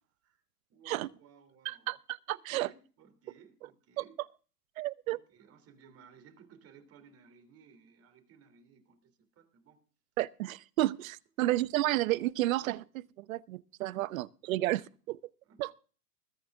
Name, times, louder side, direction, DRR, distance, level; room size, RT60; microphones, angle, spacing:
voice 1, 0.7-1.9 2.3-4.2 5.1-9.9 13.9-14.1 14.4-14.8 15.4-15.6, right 7 dB, 30° right, 3.1 m, -59 dB
voice 2, 1.6-2.7 4.0-4.1 4.8-5.2 10.2-15.2 15.6-15.7, right 16 dB, 60° right, 0.9 m, -32 dB
21.0 x 9.7 x 3.5 m
hypercardioid pair, 120°, 47 cm